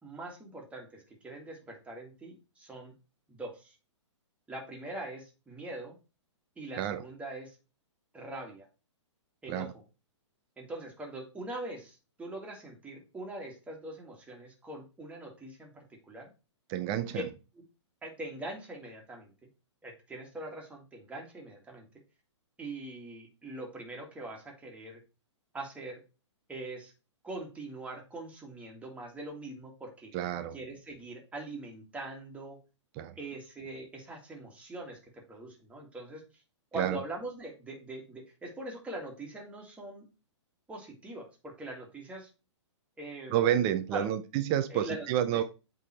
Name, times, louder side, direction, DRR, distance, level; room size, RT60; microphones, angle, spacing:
voice 1, 0.0-2.9 3.3-3.8 4.5-5.9 6.6-7.6 8.1-8.7 9.4-9.7 10.6-16.3 17.1-17.2 18.0-19.3 19.8-21.9 22.6-25.0 25.5-26.0 26.5-26.9 27.2-30.1 30.5-32.6 33.2-36.2 36.7-40.1 40.7-42.3 43.0-43.5 43.9-44.1 44.7-45.1, right 2 dB, 10° right, 2.0 m, -42 dB
voice 2, 16.7-17.3 30.1-30.6 33.0-33.1 36.7-37.0 43.3-45.4, right 11 dB, 30° right, 0.6 m, -29 dB
8.2 x 3.8 x 4.3 m
hypercardioid pair, 140°, 16 cm